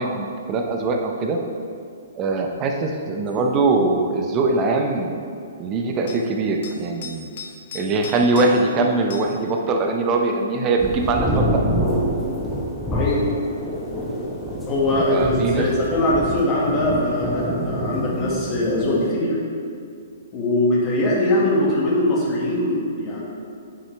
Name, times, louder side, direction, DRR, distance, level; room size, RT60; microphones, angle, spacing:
voice 1, 0.0-1.4 2.2-5.1 5.6-7.3 7.7-11.6 15.1-15.7, right 3 dB, 25° right, 3 dB, 0.7 m, -22 dB
sound 1, 3.3-3.4 6.1-6.2 6.6-8.8 9.1-9.4 11.9-12.0, left 5 dB, 45° left, 0.9 m, -38 dB
sound 2, 10.8-19.1, equal, 5° left, 1.0 m, -26 dB
voice 2, 12.9-13.2 14.7-19.4 20.3-23.2, left 1 dB, 25° left, -5 dB, 1.7 m, -21 dB
9.8 x 5.7 x 3.3 m, 2.3 s
figure-of-eight pair, 120°, 0 cm